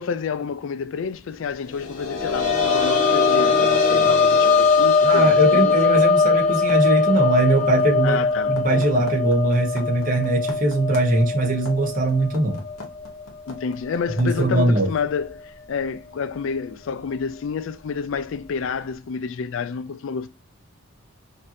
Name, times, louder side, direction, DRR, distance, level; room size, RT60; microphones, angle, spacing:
voice 1, 0.0-5.7 8.0-8.6 13.5-20.3, left 5 dB, 60° left, 0.4 m, -29 dB
sound 1, 1.8-13.2 13.6-13.7 15.2-15.3, left 4 dB, 40° left, 1.1 m, -20 dB
sound 2, 3.4-14.4, left 3 dB, 80° left, 1.2 m, -40 dB
voice 2, 5.0-12.6 14.1-14.9, right 1 dB, 40° right, 1.0 m, -21 dB
5.2 x 2.7 x 2.6 m
head